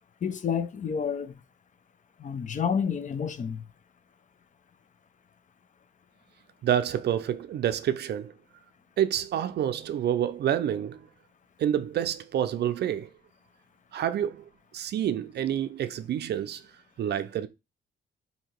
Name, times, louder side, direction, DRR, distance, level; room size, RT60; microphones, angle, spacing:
voice 1, 0.2-1.4 2.2-3.6, left 7 dB, 40° left, 0.5 m, -29 dB
voice 2, 6.6-8.3 9.0-11.1 11.6-13.1 13.9-14.4 14.7-16.6 17.0-17.5, right 10 dB, 55° right, 0.4 m, -28 dB
2.8 x 2.8 x 4.4 m
cardioid pair, 90°, 20 cm